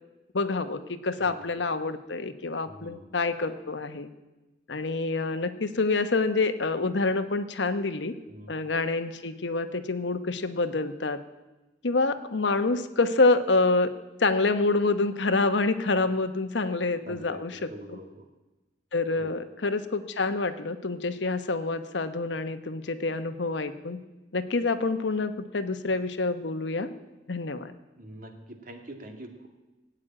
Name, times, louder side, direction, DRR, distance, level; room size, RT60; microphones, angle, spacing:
voice 1, 0.3-4.1 4.7-8.1 8.5-11.2 11.8-13.9 14.2-18.0 18.9-24.0 24.3-26.9 27.3-27.7, left 3 dB, 75° left, 10 dB, 1.0 m, -27 dB
voice 2, 2.7-3.1 8.3-8.5 17.0-18.3 19.2-19.3 28.0-29.5, right 1 dB, 50° right, 4 dB, 2.2 m, -44 dB
17.5 x 8.9 x 8.9 m, 1.1 s
head